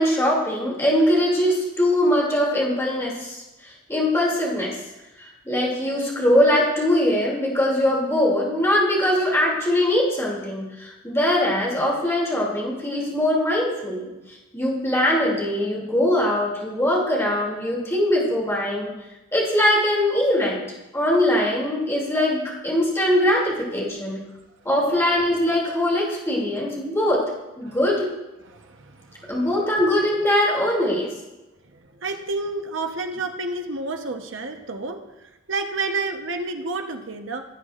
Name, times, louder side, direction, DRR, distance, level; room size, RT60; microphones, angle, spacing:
voice 1, 0.0-4.8 5.2-14.1 14.5-18.9 19.3-20.6 20.9-24.2 24.6-27.3 27.6-28.1 29.3-31.1, left 1 dB, 15° left, -4 dB, 2.7 m, -22 dB
voice 2, 28.5-29.2 31.7-35.0 35.5-37.4, right 3 dB, 70° right, 4 dB, 1.0 m, -30 dB
16.5 x 8.2 x 2.5 m, 1.0 s
head